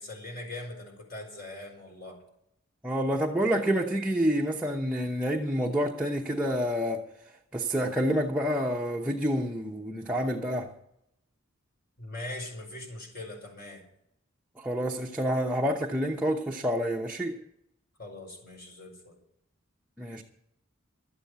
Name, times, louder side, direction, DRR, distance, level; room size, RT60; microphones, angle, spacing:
voice 1, 0.0-2.2 12.0-13.8 18.0-19.2, left 2 dB, 45° left, 5.1 m, -41 dB
voice 2, 2.8-7.0 7.5-10.7 14.6-17.4 20.0-20.2, equal, 5° right, 0.9 m, -28 dB
12.5 x 8.9 x 8.0 m
head